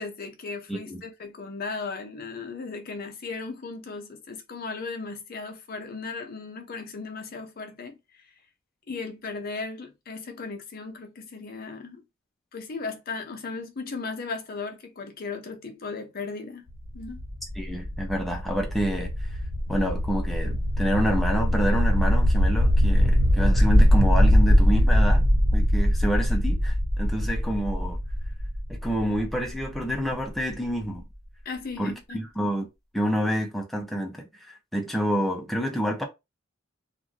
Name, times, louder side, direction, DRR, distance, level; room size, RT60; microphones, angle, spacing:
voice 1, 0.0-8.2 8.9-12.0 12.5-16.6 16.9-17.2 31.5-32.2, left 4 dB, 45° left, 0.5 m, -36 dB
voice 2, 0.7-1.0 17.6-19.3 19.7-25.3 25.5-28.0 28.7-31.0 31.8-32.7 32.9-36.0, equal, ahead, 0.5 m, -28 dB
sound 1, 16.7-30.4, equal, 75° right, 1.3 m, -22 dB
2.5 x 2.5 x 2.9 m
head